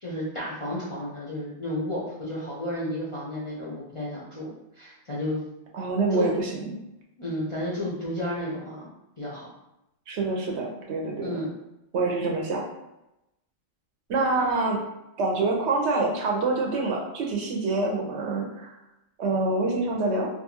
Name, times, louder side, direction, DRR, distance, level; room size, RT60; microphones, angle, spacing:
voice 1, 0.0-4.5 4.7-5.4 6.1-6.3 7.2-8.9 9.2-9.5 11.2-11.5, left 1 dB, 40° left, -7 dB, 0.4 m, -32 dB
voice 2, 5.7-6.7 10.1-11.4 11.9-12.7 14.1-14.8 15.2-18.7 19.2-20.3, right 3 dB, 70° right, 0 dB, 0.8 m, -26 dB
2.5 x 2.3 x 2.8 m, 0.89 s
omnidirectional pair, 1.3 m